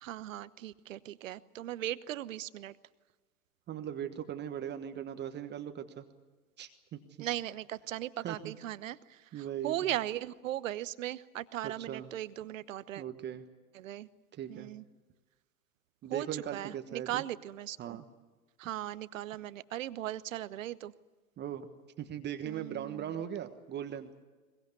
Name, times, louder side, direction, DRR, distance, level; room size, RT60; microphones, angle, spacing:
voice 1, 0.0-2.8 7.2-13.0 13.7-14.1 14.5-14.8 16.1-18.0 18.6-20.9 22.4-23.2, right 13 dB, 60° right, 16 dB, 1.0 m, -38 dB
voice 2, 3.7-6.0 6.6-7.3 8.2-8.5 9.3-9.9 11.6-12.1 13.0-13.4 14.3-14.7 16.0-17.2 17.8-18.1 21.4-21.7 22.0-24.1, right 10 dB, 25° right, 8 dB, 1.3 m, -39 dB
22.5 x 21.0 x 8.3 m, 1.3 s
figure-of-eight pair, 100°, 44 cm